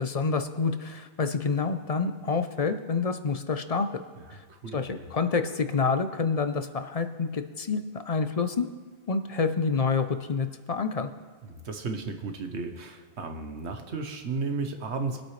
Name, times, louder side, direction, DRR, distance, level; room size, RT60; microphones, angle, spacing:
voice 1, 0.0-4.0 4.3-4.4 4.7-8.7 9.1-11.1, left 4 dB, 40° left, 9 dB, 0.6 m, -28 dB
voice 2, 4.3-5.1 11.5-15.2, right 4 dB, 75° right, 6 dB, 1.3 m, -34 dB
23.0 x 8.6 x 3.2 m, 1.4 s
omnidirectional pair, 1.2 m